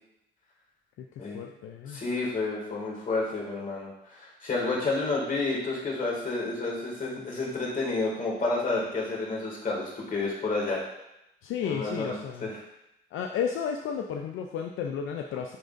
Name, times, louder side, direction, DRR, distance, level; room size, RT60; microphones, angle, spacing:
voice 1, 1.3-2.0 11.4-12.5 13.1-15.6, left 7 dB, 80° left, 3 dB, 0.5 m, -32 dB
voice 2, 1.9-10.9 11.6-12.1 12.4-12.6, left 3 dB, 45° left, -3 dB, 2.3 m, -30 dB
10.0 x 3.8 x 2.6 m, 0.86 s
cardioid pair, 90°, 20 cm